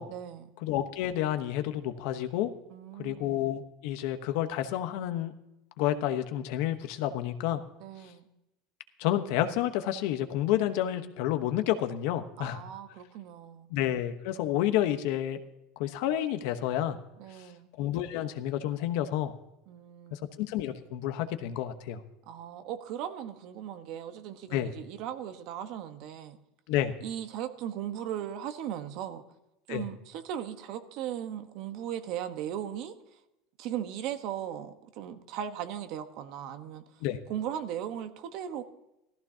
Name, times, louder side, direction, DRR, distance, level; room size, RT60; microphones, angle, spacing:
voice 1, 0.1-0.5 2.7-3.3 7.8-8.3 12.4-13.7 17.2-17.7 19.7-20.3 22.3-26.4 27.0-29.2 29.7-33.2 33.6-36.8 37.3-38.6, right 10 dB, 55° right, 1.2 m, -38 dB
voice 2, 0.6-2.5 3.0-5.3 5.8-7.6 9.0-12.6 13.7-15.4 15.8-17.0 17.8-19.3 20.1-22.0 24.5-24.7 26.7-26.9 29.7-29.8 37.0-37.2, left 12 dB, 65° left, 1.1 m, -30 dB
16.0 x 14.0 x 2.9 m
supercardioid pair, 145°, 0 cm